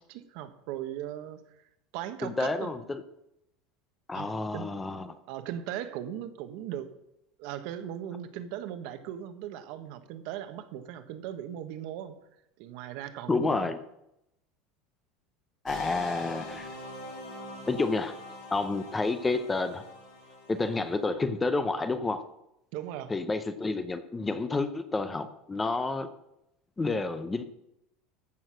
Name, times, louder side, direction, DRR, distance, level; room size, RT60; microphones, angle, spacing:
voice 1, 0.0-1.4 1.9-2.7 4.1-4.7 5.3-6.9 7.4-12.2 12.6-13.7 22.7-23.1, right 11 dB, 55° right, 10 dB, 1.1 m, -38 dB
voice 2, 2.2-3.0 4.1-5.1 13.3-13.8 15.6-16.7 17.7-18.2 18.5-19.8 20.5-22.3 23.1-26.1 26.8-27.4, left 3 dB, 10° left, 11 dB, 0.6 m, -29 dB
sound 1, 15.7-21.0, left 2 dB, 80° left, 5.0 m, -43 dB
14.5 x 6.3 x 6.2 m, 0.83 s
cardioid pair, 170°, 0 cm